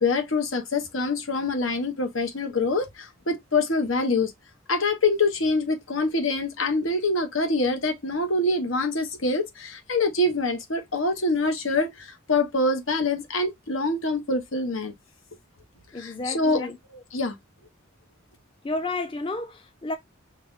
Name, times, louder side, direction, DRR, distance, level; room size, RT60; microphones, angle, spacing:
voice 1, 0.0-4.3 4.7-14.9 15.9-17.3, left 2 dB, 85° left, 1.3 m, -25 dB
voice 2, 15.9-16.8 18.6-20.0, left 2 dB, 25° left, 0.6 m, -31 dB
5.8 x 2.5 x 3.6 m
head